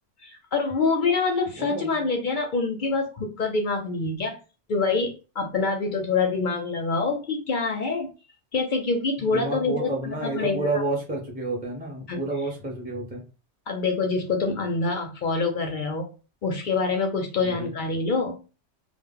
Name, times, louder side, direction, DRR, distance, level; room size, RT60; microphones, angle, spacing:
voice 1, 0.2-4.4 4.7-8.1 8.5-10.8 12.1-12.2 13.7-16.1 16.4-18.4, left 4 dB, 55° left, 3 dB, 0.6 m, -26 dB
voice 2, 1.6-2.0 9.2-13.2 17.4-17.7, right 2 dB, 10° right, -1 dB, 0.6 m, -30 dB
2.1 x 2.0 x 3.5 m, 0.33 s
omnidirectional pair, 1.2 m